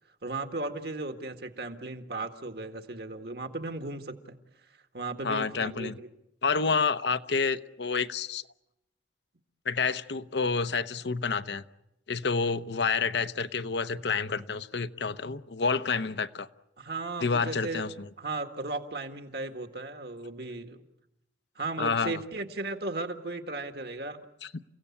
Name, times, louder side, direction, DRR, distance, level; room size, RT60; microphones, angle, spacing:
voice 1, 0.2-4.4 4.9-6.1 6.7-6.8 16.8-17.8 18.2-20.9 21.6-24.2, right 2 dB, 60° right, 7 dB, 1.8 m, -36 dB
voice 2, 5.2-5.9 6.4-8.4 9.6-11.6 12.1-16.5 17.2-18.1 21.8-22.2 24.4-24.5, left 5 dB, 75° left, 12 dB, 0.8 m, -29 dB
30.0 x 16.5 x 8.6 m, 0.87 s
head